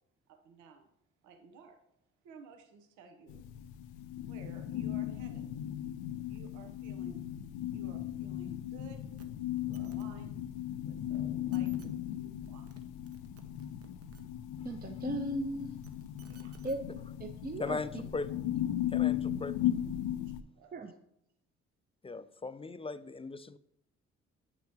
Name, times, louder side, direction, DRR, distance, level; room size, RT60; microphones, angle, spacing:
voice 1, 0.3-0.9 1.2-1.8 2.2-3.5 4.3-5.5 6.3-7.2 7.7-9.0 9.6-10.4 10.8-12.7 16.3-16.6 20.6-20.7, right 5 dB, 80° right, 5 dB, 0.9 m, -55 dB
sound 1, 3.3-20.4, left 12 dB, 85° left, 0.5 m, -37 dB
sound 2, 9.2-9.3 9.6-10.1 11.2-11.3 11.5-11.9 12.5-12.8 13.1-14.2 15.6-16.8 17.8-17.9, right 5 dB, 50° right, 1.0 m, -57 dB
voice 2, 14.6-15.8 16.6-16.8 17.2-18.0 20.7-20.9, right 1 dB, 30° right, 5 dB, 0.8 m, -37 dB
voice 3, 17.6-18.3 18.9-19.6 22.0-23.6, left 3 dB, 20° left, 14 dB, 0.5 m, -38 dB
8.4 x 5.9 x 2.9 m, 0.77 s
hypercardioid pair, 50°, 30 cm